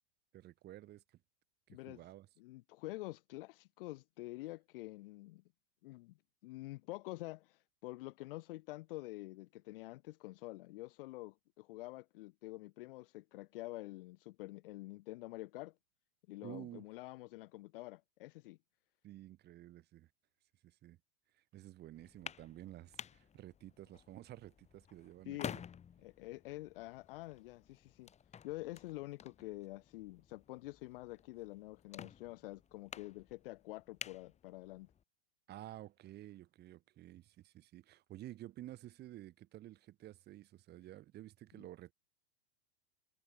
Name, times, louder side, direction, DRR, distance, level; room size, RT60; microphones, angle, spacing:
voice 1, 0.3-1.0 1.7-2.3 16.4-16.9 19.0-20.1 20.6-21.0 21.5-25.6 35.5-41.9, right 14 dB, 30° right, 1.9 m, -52 dB
voice 2, 1.7-2.1 2.4-5.4 5.8-6.1 6.4-15.7 16.3-18.6 25.2-25.6 26.0-28.1 28.4-34.9, left 20 dB, 60° left, 0.9 m, -47 dB
sound 1, 21.9-35.0, left 8 dB, 20° left, 4.2 m, -52 dB
hypercardioid pair, 125°, 31 cm